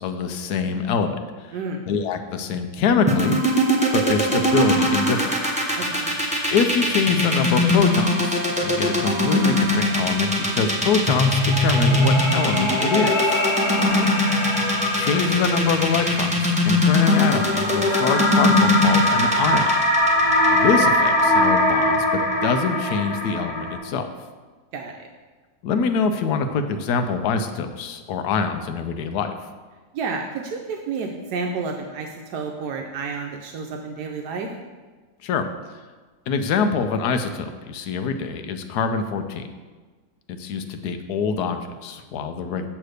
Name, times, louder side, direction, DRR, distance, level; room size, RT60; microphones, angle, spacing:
voice 1, 0.0-1.5 1.8-3.4 3.9-5.3 6.5-13.4 14.9-19.7 20.5-24.1 25.6-29.4 35.2-35.5 36.3-39.5 40.3-42.7, left 5 dB, 75° left, 7 dB, 1.1 m, -24 dB
voice 2, 1.5-1.8 5.8-6.1 13.8-14.1 24.7-25.1 29.9-34.5, right 4 dB, 80° right, 2 dB, 1.2 m, -30 dB
sound 1, 3.1-21.2, left 1 dB, 10° right, 0.3 m, -20 dB
sound 2, 4.5-6.1 6.4-6.5 10.9-23.8, left 1 dB, 50° left, 1.6 m, -23 dB
7.9 x 3.3 x 6.4 m, 1.4 s
omnidirectional pair, 1.8 m